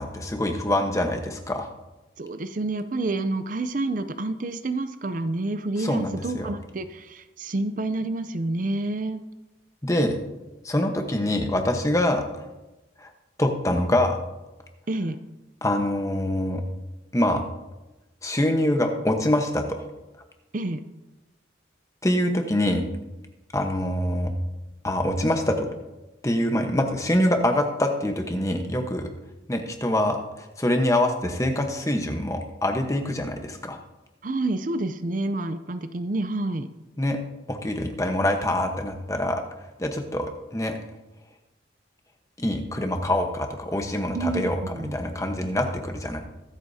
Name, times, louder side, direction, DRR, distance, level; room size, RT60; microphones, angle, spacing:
voice 1, 0.0-1.7 5.8-6.5 9.8-10.2 10.6-12.5 13.0-13.1 13.4-14.2 15.6-16.6 17.1-17.4 18.2-19.8 22.0-22.8 23.5-24.3 24.8-25.7 26.2-29.1 29.5-33.8 37.0-37.2 37.5-39.4 39.8-40.8 42.4-46.2, left 1 dB, 15° left, 4 dB, 1.1 m, -25 dB
voice 2, 2.2-9.2 14.9-15.2 20.5-20.8 34.2-36.7 44.1-45.0, right 2 dB, 45° right, 10 dB, 0.5 m, -28 dB
23.0 x 8.2 x 2.8 m, 1.0 s
head